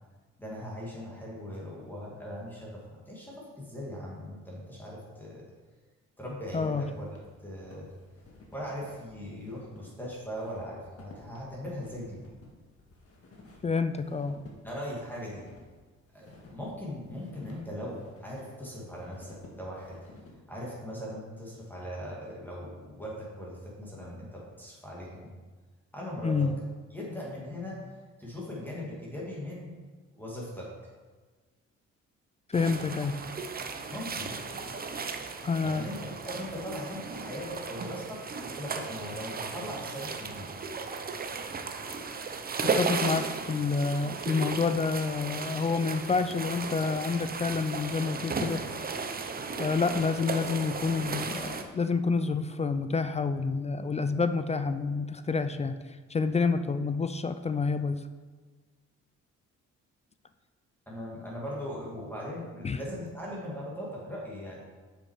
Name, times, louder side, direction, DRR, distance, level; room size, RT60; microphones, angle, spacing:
voice 1, 0.4-5.4 6.2-7.1 7.4-7.9 8.5-12.2 14.6-15.4 16.1-20.0 20.5-25.3 25.9-26.5 26.9-27.8 28.2-29.7 30.1-30.7 33.2-33.3 33.9-34.4 35.6-36.0 36.2-40.5 60.9-64.6, equal, 5° left, -5 dB, 2.3 m, -39 dB
voice 2, 6.5-6.9 13.6-14.4 26.2-26.6 32.5-33.1 35.4-35.9 42.6-48.6 49.6-55.8 56.1-58.0 62.6-62.8, left 4 dB, 20° left, 10 dB, 0.4 m, -28 dB
sound 1, 6.7-20.4, left 2 dB, 50° left, 1.8 m, -55 dB
sound 2, 32.5-51.6, right 4 dB, 30° right, 0.7 m, -35 dB
6.9 x 6.0 x 4.8 m, 1.4 s
cardioid pair, 90°, 30 cm